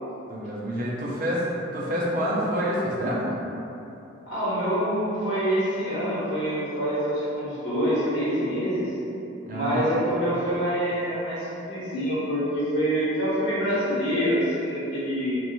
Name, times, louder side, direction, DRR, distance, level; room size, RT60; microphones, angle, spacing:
voice 1, 0.3-1.4 1.7-3.4 9.5-9.9, equal, 40° right, -5 dB, 0.6 m, -27 dB
voice 2, 4.3-8.9 9.5-15.3, equal, 60° left, -10 dB, 1.4 m, -26 dB
3.1 x 2.6 x 4.2 m, 2.9 s
head